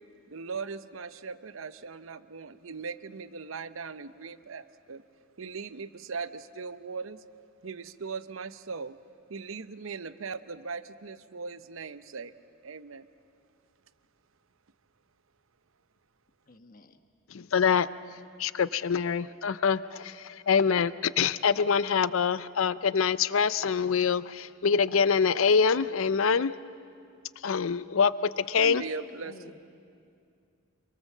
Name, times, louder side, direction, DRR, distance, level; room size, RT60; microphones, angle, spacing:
voice 1, 0.3-5.0 5.4-7.2 7.6-9.0 9.3-12.3 12.6-13.1 28.6-29.4, right 5 dB, 70° right, 13 dB, 0.8 m, -39 dB
voice 2, 16.5-17.0 29.2-29.6, left 1 dB, 40° left, 8 dB, 1.2 m, -51 dB
voice 3, 17.3-26.6 27.4-28.8, left 6 dB, 75° left, 16 dB, 0.5 m, -25 dB
27.0 x 24.0 x 7.3 m, 2.4 s
head